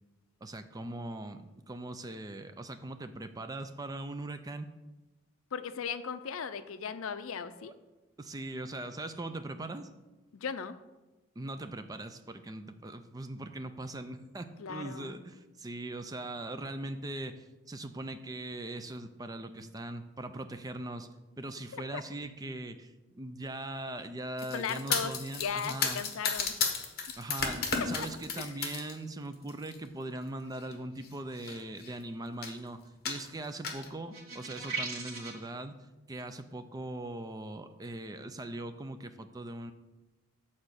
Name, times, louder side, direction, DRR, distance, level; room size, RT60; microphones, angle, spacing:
voice 1, 0.4-4.7 7.6-7.7 8.2-9.9 11.4-21.1 21.4-26.0 27.2-35.7 36.1-39.7, right 2 dB, 15° right, 9 dB, 0.4 m, -40 dB
voice 2, 5.5-7.7 10.3-10.8 14.6-15.2 21.7-21.8 24.5-25.1 25.4-26.5 28.0-28.1 28.4-28.5, left 6 dB, 75° left, 12 dB, 0.5 m, -37 dB
sound 1, 24.4-28.9 29.3-29.8 30.6-30.7 31.0-31.1 31.4-32.0 32.4-32.6 33.1-33.9, left 5 dB, 45° left, 1.1 m, -33 dB
sound 2, 34.1-35.5, right 4 dB, 75° right, 1.9 m, -38 dB
8.2 x 4.3 x 6.5 m, 1.1 s
head